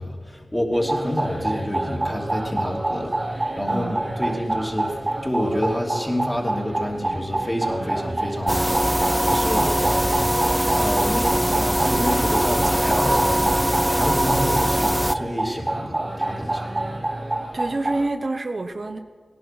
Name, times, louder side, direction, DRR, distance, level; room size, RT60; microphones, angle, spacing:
voice 1, 0.0-10.3 10.7-16.7, equal, 15° left, -1 dB, 2.9 m, -28 dB
sound 1, 0.7-18.1, right 2 dB, 30° right, 1.1 m, -27 dB
voice 2, 3.6-4.0 9.4-9.9 17.1-17.2 17.5-19.0, right 2 dB, 55° right, 6 dB, 0.9 m, -28 dB
sound 2, 8.5-15.1, equal, 5° right, 0.4 m, -21 dB
17.5 x 11.0 x 6.0 m, 1.5 s
cardioid pair, 45°, 0 cm